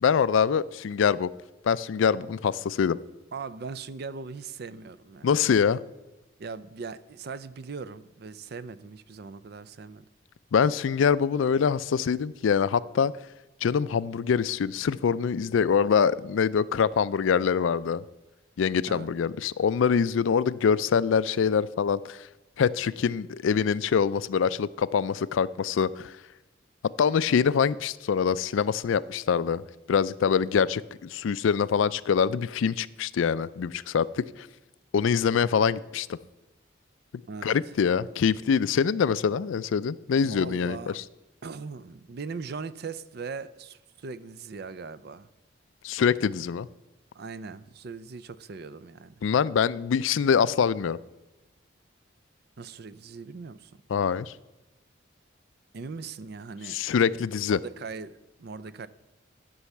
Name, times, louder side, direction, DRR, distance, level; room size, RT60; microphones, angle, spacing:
voice 1, 0.0-1.3 1.6-3.0 5.2-5.8 10.5-13.1 13.6-18.0 18.6-22.3 22.6-26.2 27.0-29.6 29.9-34.5 34.9-36.1 37.4-41.0 45.8-46.7 49.2-51.0 53.9-54.3 56.6-57.6, left 6 dB, 75° left, 0.4 m, -24 dB
voice 2, 3.3-5.3 6.4-10.1 18.9-19.1 37.3-37.6 40.2-41.0 41.4-45.3 47.1-49.2 52.6-53.7 55.7-56.8 57.5-58.9, right 4 dB, 55° right, 0.4 m, -39 dB
11.5 x 5.5 x 7.1 m
head